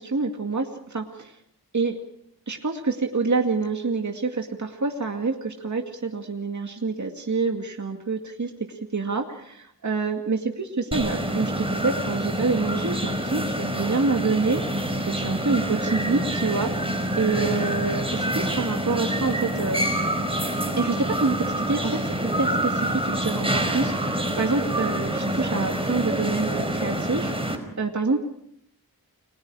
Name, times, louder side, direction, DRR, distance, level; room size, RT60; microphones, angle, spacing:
voice 1, 0.0-1.4 1.7-2.0 2.5-19.9 20.8-28.2, right 4 dB, 45° right, 3 dB, 2.3 m, -27 dB
sound 1, 10.9-27.6, right 1 dB, 15° right, 4.9 m, -27 dB
30.0 x 21.5 x 4.9 m, 0.73 s
wide cardioid pair, 60°, 38 cm